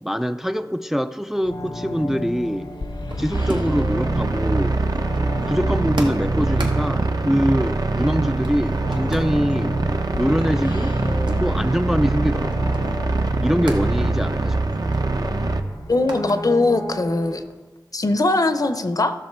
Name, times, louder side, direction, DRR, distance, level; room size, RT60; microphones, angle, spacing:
voice 1, 0.0-2.7 3.2-4.8 5.5-9.8 10.1-10.9 11.4-12.7 13.4-14.6, equal, 5° right, 9 dB, 0.3 m, -23 dB
sound 1, 1.4-17.4, left 1 dB, 80° left, 1.1 m, -33 dB
sound 2, 2.0-4.0 4.2-8.1 8.4-9.3 9.7-13.9 14.2-14.4 14.6-16.4 16.8-17.6, right 2 dB, 85° right, 1.2 m, -38 dB
sound 3, 3.3-15.6, right 2 dB, 60° right, 0.7 m, -23 dB
voice 2, 15.9-17.4 17.9-19.1, left 2 dB, 50° left, 10 dB, 0.7 m, -20 dB
13.0 x 6.3 x 4.6 m, 1.3 s
wide cardioid pair, 50°, 8 cm